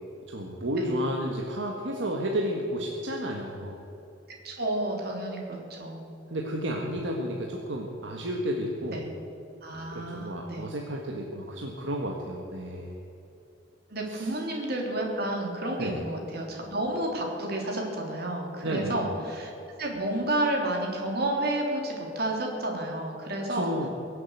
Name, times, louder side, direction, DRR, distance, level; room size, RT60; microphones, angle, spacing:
voice 1, 0.3-3.8 6.3-9.0 9.9-13.0 14.1-14.3 15.8-16.0 18.6-19.0 23.5-23.9, equal, 75° right, 0 dB, 1.6 m, -32 dB
voice 2, 4.4-6.0 8.9-9.1 9.6-10.7 13.9-19.5 19.8-23.9, right 1 dB, 55° right, 0 dB, 3.4 m, -31 dB
22.5 x 7.8 x 8.1 m, 3.0 s
head